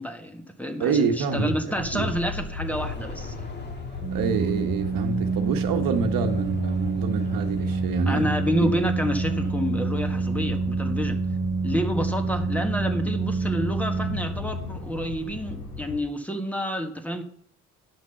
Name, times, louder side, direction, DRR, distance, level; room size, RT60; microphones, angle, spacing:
voice 1, 0.0-3.4 8.1-11.2 11.6-17.2, equal, 5° left, 1.7 m, -29 dB
voice 2, 0.8-2.1 4.1-8.2 8.6-8.9, right 5 dB, 65° right, 1.2 m, -27 dB
sound 1, 1.3-10.4, left 2 dB, 30° left, 2.6 m, -45 dB
sound 2, 1.8-16.0, left 4 dB, 55° left, 3.9 m, -37 dB
Organ, 4.0-14.8, right 4 dB, 30° right, 1.4 m, -27 dB
9.4 x 6.0 x 5.8 m
hypercardioid pair, 60°, 37 cm